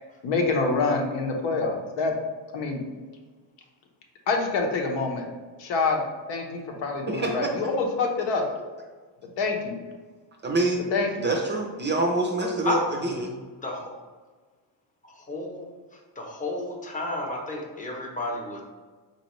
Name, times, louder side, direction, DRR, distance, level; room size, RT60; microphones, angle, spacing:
voice 1, 0.2-2.1 2.5-2.8 4.3-5.3 5.6-6.0 6.3-8.4 9.4-9.8 10.9-11.3, left 3 dB, 75° left, 2 dB, 0.9 m, -26 dB
voice 2, 7.1-7.4 10.4-10.8 11.2-13.3, right 2 dB, 25° right, 0 dB, 0.5 m, -26 dB
voice 3, 15.3-15.7 16.2-18.6, left 2 dB, 15° left, -1 dB, 0.8 m, -31 dB
4.0 x 3.1 x 3.0 m, 1.4 s
cardioid pair, 110°, 45 cm